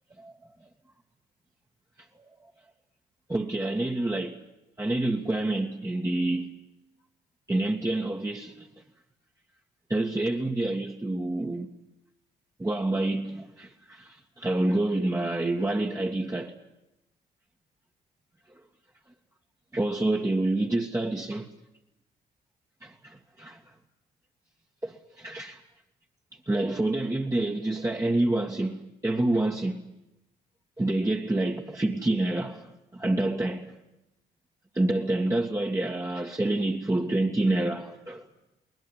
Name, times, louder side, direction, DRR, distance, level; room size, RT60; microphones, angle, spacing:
voice 1, 3.3-4.4 4.8-6.5 7.5-8.7 9.9-11.7 12.6-16.6 18.5-18.6 19.7-21.5 22.8-23.6 24.8-25.6 26.5-29.8 30.8-33.7 34.7-38.3, right 2 dB, 15° right, 1.9 m, -28 dB
22.0 x 19.5 x 9.8 m
hypercardioid pair, 50°, 21 cm